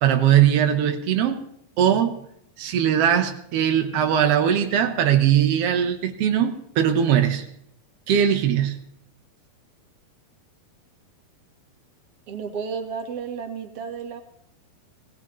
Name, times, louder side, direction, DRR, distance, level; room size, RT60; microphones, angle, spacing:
voice 1, 0.0-1.4 1.8-2.2 2.6-7.5 8.1-8.8, right 9 dB, 80° right, 5 dB, 1.3 m, -20 dB
voice 2, 12.3-14.2, right 6 dB, 50° right, 3 dB, 2.0 m, -32 dB
22.5 x 17.5 x 3.1 m, 0.72 s
omnidirectional pair, 4.1 m